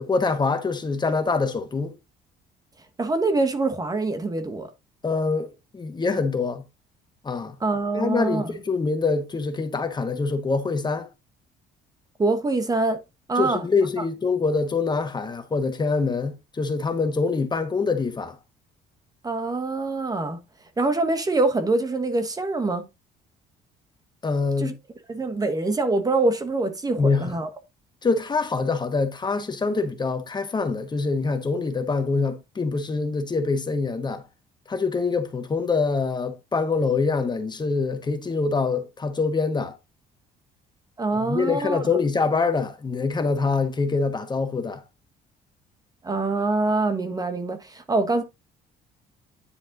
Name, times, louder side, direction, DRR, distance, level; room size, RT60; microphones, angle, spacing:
voice 1, 0.0-1.9 5.0-6.6 7.2-7.6 7.9-11.1 13.4-18.4 24.2-24.8 27.0-27.3 28.0-34.2 34.7-39.8 41.1-44.8, left 4 dB, 25° left, 1.3 m, -25 dB
voice 2, 3.0-4.7 7.6-8.5 12.2-13.0 13.3-13.7 14.0-14.1 19.2-20.4 20.8-22.9 24.6-24.8 25.1-27.5 41.0-41.9 46.0-48.2, right 3 dB, 20° right, 1.4 m, -24 dB
10.0 x 4.2 x 3.9 m
cardioid pair, 110°, 17 cm